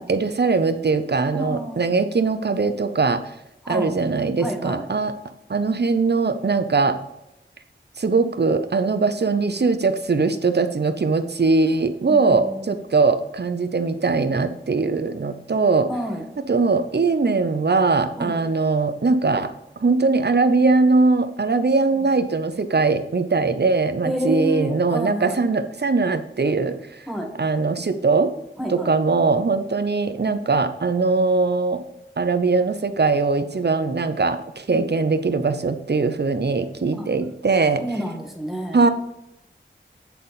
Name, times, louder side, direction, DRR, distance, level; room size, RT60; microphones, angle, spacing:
voice 1, 0.0-3.2 3.7-5.1 5.5-7.0 8.0-15.9 16.5-19.5 19.8-27.1 27.4-28.3 28.7-31.8 32.2-37.8 38.7-38.9, right 4 dB, 60° right, 10 dB, 0.7 m, -21 dB
voice 2, 1.3-1.8 3.6-3.9 4.4-4.9 12.1-12.7 15.9-16.2 18.1-18.4 22.0-22.1 24.0-25.4 27.1-27.3 28.6-29.0 34.7-34.9 36.9-37.1 37.8-38.9, equal, ahead, 1 dB, 1.7 m, -29 dB
8.4 x 4.1 x 5.6 m, 0.85 s
wide cardioid pair, 60°, 20 cm